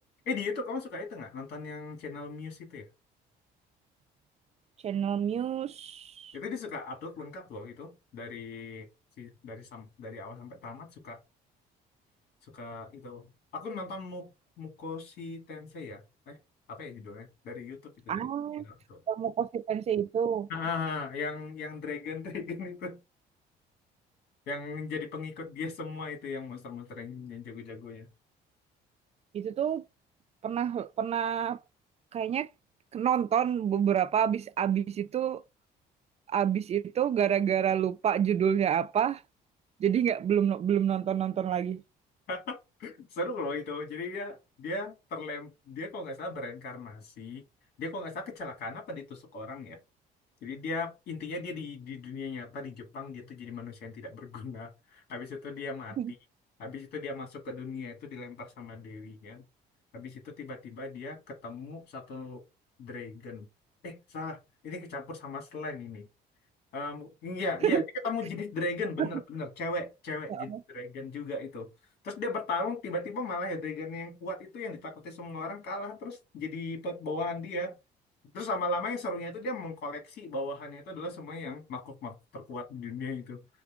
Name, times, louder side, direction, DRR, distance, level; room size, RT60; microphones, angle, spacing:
voice 1, 0.3-2.8 6.3-8.9 9.2-11.2 12.5-14.3 14.6-16.4 16.7-18.3 18.6-19.0 20.5-23.0 24.5-28.1 42.3-47.4 47.8-49.8 50.4-56.0 56.6-59.4 59.9-62.4 62.8-63.5 63.8-66.1 66.7-71.7 72.0-77.7 78.3-83.4, left 3 dB, 70° left, 2.4 m, -37 dB
voice 2, 4.8-6.4 18.1-18.6 19.1-20.5 29.3-29.8 30.4-31.6 32.1-32.5 32.9-35.4 36.3-39.2 39.8-41.8 56.0-56.1 67.6-67.8 69.0-69.1 70.3-70.6, right 9 dB, 40° right, 0.4 m, -28 dB
5.0 x 2.2 x 4.7 m
cardioid pair, 110°, 17 cm